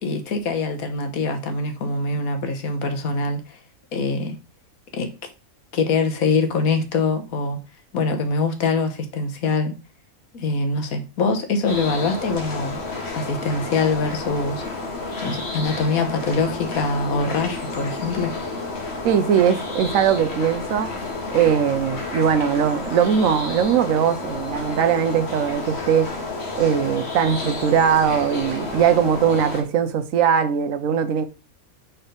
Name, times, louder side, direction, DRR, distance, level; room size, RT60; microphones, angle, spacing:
voice 1, 0.0-3.6 3.9-4.4 4.9-5.1 5.7-7.6 7.9-9.7 10.3-12.8 13.1-14.6 15.2-18.3, left 3 dB, 75° left, 1.5 m, -24 dB
sound 1, 11.7-29.6, left 3 dB, 50° left, 1.7 m, -31 dB
voice 2, 19.0-20.9 21.3-26.1 26.6-31.3, right 8 dB, 65° right, 1.1 m, -20 dB
4.4 x 4.4 x 5.1 m
omnidirectional pair, 1.5 m